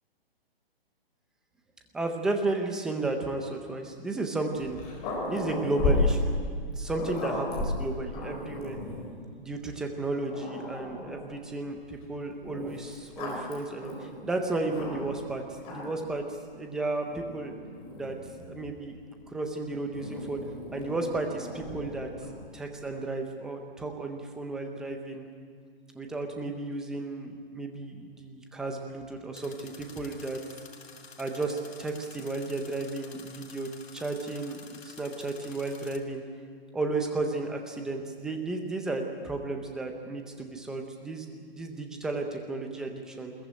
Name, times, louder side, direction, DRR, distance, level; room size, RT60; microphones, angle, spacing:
voice 1, 1.9-4.8 5.3-6.2 6.5-8.8 9.3-15.4 15.7-16.2 16.5-17.6 18.0-18.2 18.5-18.9 19.3-20.4 20.7-22.1 22.5-25.2 25.9-30.4 31.2-34.6 34.8-36.2 36.7-43.3, right 2 dB, ahead, 3 dB, 0.5 m, -33 dB
Growling, 4.5-9.1 9.8-9.9 10.3-11.4 12.4-15.2 15.6-16.1 17.0-18.8 19.9-22.5, left 2 dB, 20° left, 4.4 m, -34 dB
sound 1, 29.3-36.0, left 5 dB, 90° left, 3.1 m, -50 dB
21.0 x 20.0 x 8.9 m, 2.1 s
hypercardioid pair, 165°, 30 cm